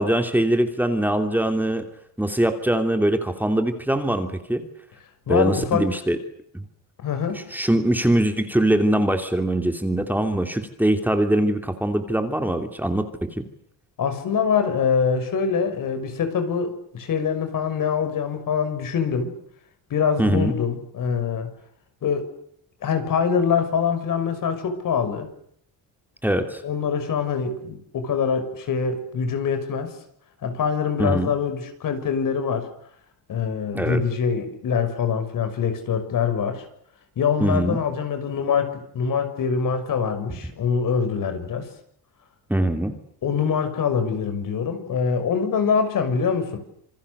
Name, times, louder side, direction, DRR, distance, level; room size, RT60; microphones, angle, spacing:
voice 1, 0.0-1.9 2.2-4.6 5.3-6.2 6.5-6.6 7.3-13.4 20.2-20.5 26.2-26.6 31.0-31.3 33.7-34.0 37.4-37.8 42.5-42.9, right 1 dB, 5° right, 6 dB, 2.9 m, -22 dB
voice 2, 5.3-5.9 7.0-7.5 14.0-19.3 19.9-21.5 22.0-22.3 22.8-25.3 26.6-29.9 30.4-32.7 33.3-36.6 37.2-41.7 43.2-46.6, left 6 dB, 60° left, 9 dB, 6.2 m, -24 dB
27.5 x 27.0 x 6.9 m, 0.69 s
cardioid pair, 145°, 36 cm